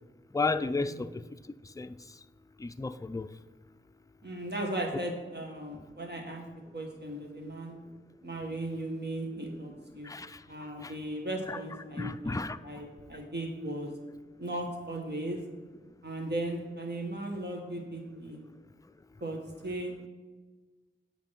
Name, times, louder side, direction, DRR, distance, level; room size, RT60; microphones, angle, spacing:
voice 1, 0.3-1.2 1.6-2.0 2.6-3.3 10.0-10.4 10.8-10.9 11.5-11.6 11.9-12.6, left 3 dB, 15° left, 11 dB, 0.4 m, -33 dB
voice 2, 4.2-6.4 6.7-7.7 8.2-10.1 10.5-13.9 14.4-15.4 16.0-18.4 19.2-20.1, right 1 dB, 55° right, 1 dB, 1.8 m, -37 dB
8.7 x 5.2 x 5.9 m, 1.3 s
wide cardioid pair, 50°, 21 cm